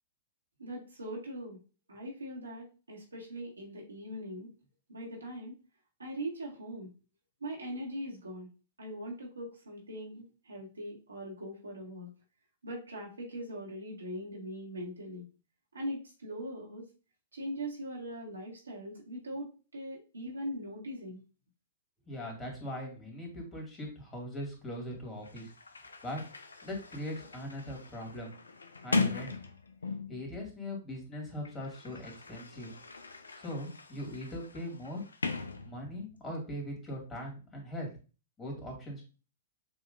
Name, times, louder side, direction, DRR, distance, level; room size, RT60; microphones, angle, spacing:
voice 1, 0.6-1.6 1.9-4.5 4.9-5.6 6.0-6.9 7.4-8.5 8.8-12.1 12.6-15.3 15.7-16.9 17.3-21.2, equal, 90° right, -2 dB, 1.9 m, -41 dB
voice 2, 22.1-25.5 25.8-26.2 26.6-28.3 28.8-29.4 30.1-32.7 33.4-35.0 35.6-37.9 38.4-39.0, equal, 15° left, -1 dB, 2.2 m, -40 dB
Sliding door, 24.9-25.0 25.2-30.3 31.2-36.2, left 4 dB, 85° left, 0.6 m, -39 dB
6.9 x 3.0 x 2.6 m, 0.34 s
hypercardioid pair, 115°, 0 cm